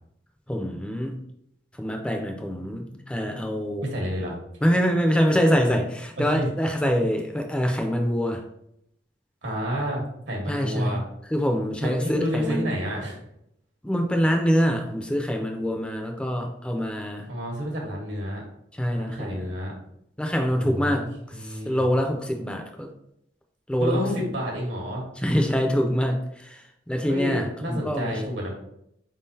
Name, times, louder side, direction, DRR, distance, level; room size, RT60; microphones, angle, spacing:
voice 1, 0.5-1.2 1.7-3.8 4.6-8.4 10.5-11.0 11.3-12.7 13.8-17.3 18.7-19.5 20.2-22.9 23.7-24.0 25.2-28.2, equal, 5° left, 3 dB, 0.4 m, -25 dB
voice 2, 3.8-4.4 6.2-6.5 6.8-6.9 9.4-11.0 11.8-13.2 17.3-18.4 19.0-19.7 20.5-21.0 21.3-21.8 23.8-25.0 27.1-28.5, equal, 80° right, -1 dB, 1.3 m, -29 dB
4.4 x 3.7 x 2.7 m, 0.77 s
head